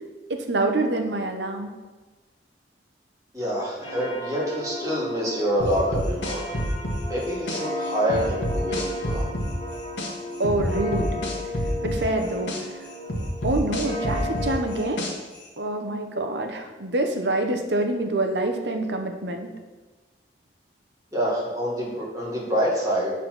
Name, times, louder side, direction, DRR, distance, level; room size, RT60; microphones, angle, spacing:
voice 1, 0.3-1.7 10.4-11.2 11.8-12.5 13.4-15.1 15.6-19.5, right 2 dB, 75° right, 5 dB, 0.9 m, -26 dB
voice 2, 3.3-6.6 7.1-9.2 21.1-23.1, equal, 20° right, -6 dB, 2.0 m, -26 dB
sound 1, 3.8-14.8, left 1 dB, 30° left, 1.6 m, -34 dB
sound 2, 5.6-7.6 8.1-10.1 10.4-12.6 13.1-15.4, equal, 85° left, 1.5 m, -28 dB
7.5 x 4.2 x 6.0 m, 1.2 s
head